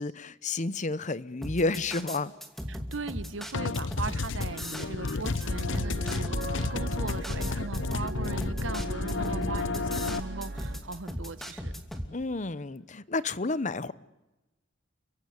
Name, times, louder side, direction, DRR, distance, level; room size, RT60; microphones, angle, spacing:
voice 1, 0.0-2.3 12.1-13.9, left 3 dB, 40° left, 0.9 m, -31 dB
sound 1, 1.4-12.1, equal, ahead, 2.6 m, -37 dB
voice 2, 2.7-11.7, right 3 dB, 90° right, 1.1 m, -39 dB
sound 2, 3.5-10.2, left 4 dB, 85° left, 0.8 m, -32 dB
sound 3, 5.4-10.8, right 1 dB, 60° right, 1.5 m, -37 dB
30.0 x 16.0 x 9.5 m
head